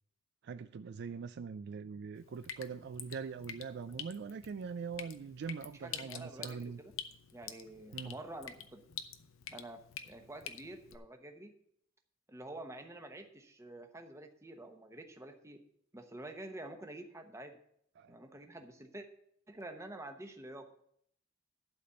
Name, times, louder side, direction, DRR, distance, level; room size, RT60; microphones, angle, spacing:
voice 1, 0.4-6.8 7.9-8.2 18.0-18.2, right 5 dB, 55° right, 12 dB, 0.3 m, -42 dB
Drip, 2.1-11.0, left 9 dB, 85° left, 0.8 m, -48 dB
voice 2, 5.7-6.9 7.3-8.8 9.5-11.5 12.3-15.6 15.9-17.6 18.1-19.1 19.5-20.8, right 1 dB, 15° right, 5 dB, 1.0 m, -48 dB
11.5 x 4.2 x 7.8 m, 0.68 s
head